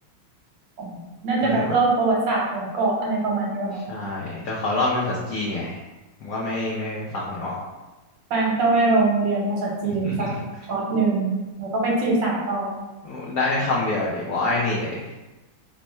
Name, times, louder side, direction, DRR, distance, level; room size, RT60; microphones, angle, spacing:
voice 1, 0.8-3.9 8.3-10.3 10.7-12.7, right 3 dB, 70° right, -3 dB, 1.5 m, -23 dB
voice 2, 3.9-5.8 6.2-7.6 10.0-10.1 13.0-15.0, left 2 dB, 75° left, -5 dB, 0.8 m, -26 dB
3.5 x 2.1 x 4.2 m, 1.1 s
omnidirectional pair, 2.2 m